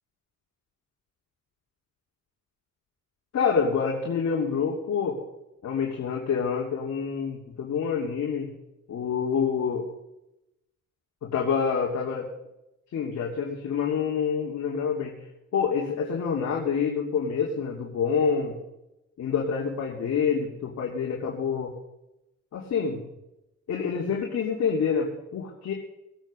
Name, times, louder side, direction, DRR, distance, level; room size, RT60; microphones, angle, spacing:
voice 1, 3.3-5.2 5.6-8.5 8.9-9.8 11.2-12.3 12.9-15.1 15.5-18.5 19.2-21.7 22.5-23.0 23.7-25.7, left 6 dB, 60° left, -1 dB, 2.9 m, -27 dB
19.5 x 9.0 x 6.4 m, 0.90 s
cardioid pair, 90°, 30 cm